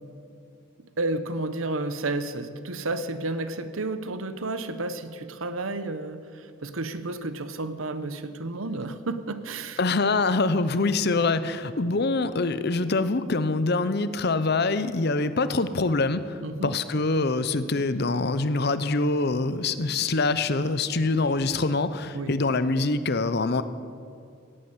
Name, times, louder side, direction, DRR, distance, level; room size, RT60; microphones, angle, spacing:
voice 1, 1.0-9.8 16.4-16.7 22.1-22.3, right 2 dB, 85° right, 11 dB, 1.0 m, -31 dB
voice 2, 9.8-23.6, left 3 dB, 50° left, 13 dB, 0.7 m, -25 dB
16.5 x 8.8 x 9.7 m, 2.5 s
head